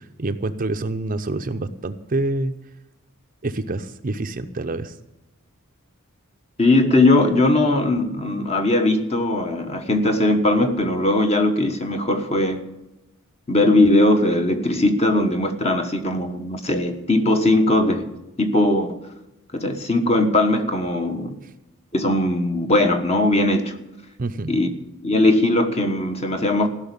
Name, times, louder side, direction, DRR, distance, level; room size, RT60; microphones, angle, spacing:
voice 1, 0.0-2.5 3.4-4.9 21.4-21.5 24.2-24.6, right 2 dB, 40° right, 0.6 m, -27 dB
voice 2, 6.6-12.6 13.5-18.1 18.4-19.0 19.5-21.4 21.9-23.7 24.5-24.7 25.0-26.7, left 2 dB, 30° left, 1.3 m, -19 dB
16.0 x 6.1 x 9.9 m
head